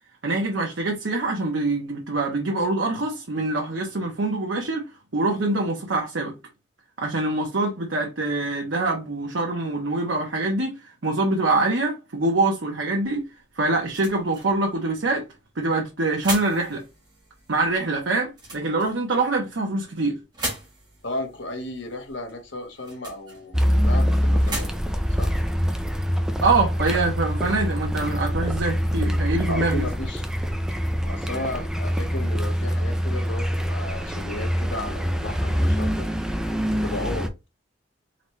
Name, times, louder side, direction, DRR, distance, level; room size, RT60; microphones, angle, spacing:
voice 1, 0.2-6.3 7.0-13.3 13.6-15.2 15.6-16.8 17.5-20.2 26.4-29.9, right 2 dB, 80° right, 0.9 m, -24 dB
sound 1, 13.0-26.5, right 2 dB, 20° right, 1.6 m, -40 dB
voice 2, 21.0-24.8 25.2-25.4 28.8-29.0 29.5-30.2 31.1-36.1 36.8-37.3, left 2 dB, 75° left, 1.3 m, -34 dB
Car, 23.5-37.3, equal, 5° right, 0.5 m, -24 dB
4.0 x 3.1 x 3.1 m
head